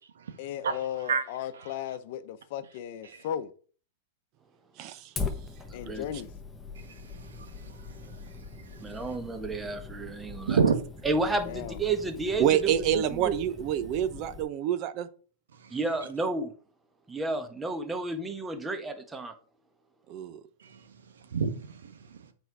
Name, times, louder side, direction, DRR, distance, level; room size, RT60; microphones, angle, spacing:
voice 1, 0.4-3.5 5.7-6.3 11.4-11.8, left 10 dB, 60° left, 0.8 m, -36 dB
Fire, 5.2-14.4, left 4 dB, 10° left, 1.2 m, -41 dB
voice 2, 5.7-6.0 8.8-10.6 11.0-13.3 15.7-16.5 17.1-19.3, right 3 dB, 15° right, 1.3 m, -31 dB
voice 3, 6.8-7.1 7.4-7.7 8.6-8.7 10.5-10.7 20.6-20.8 21.3-21.8, right 6 dB, 85° right, 1.3 m, -27 dB
voice 4, 12.4-15.1 20.1-20.4, right 10 dB, 45° right, 0.8 m, -27 dB
7.9 x 4.6 x 4.7 m
hypercardioid pair, 120°, 0 cm